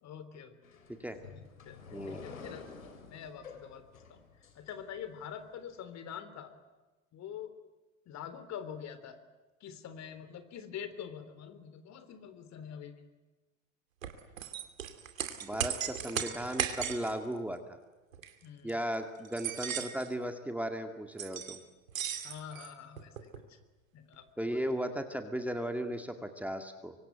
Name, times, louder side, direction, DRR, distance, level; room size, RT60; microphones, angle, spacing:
voice 1, 0.0-0.6 1.7-2.7 3.1-4.2 4.6-6.5 7.1-7.5 8.1-9.2 9.6-12.9 18.4-18.7 22.2-23.6 23.9-24.6, left 8 dB, 40° left, 11 dB, 3.5 m, -45 dB
sound 1, 0.6-5.3, left 5 dB, 80° left, 3.8 m, -50 dB
voice 2, 1.9-2.3 15.4-17.6 18.6-21.6 24.4-27.0, equal, 5° right, 6 dB, 2.1 m, -36 dB
sound 2, 14.0-17.1 18.1-18.3 18.7-18.8 19.2-20.1 21.2-21.6 21.9-23.4, right 9 dB, 75° right, 2.7 m, -37 dB
25.0 x 25.0 x 9.2 m, 1.1 s
figure-of-eight pair, 80°, 40 cm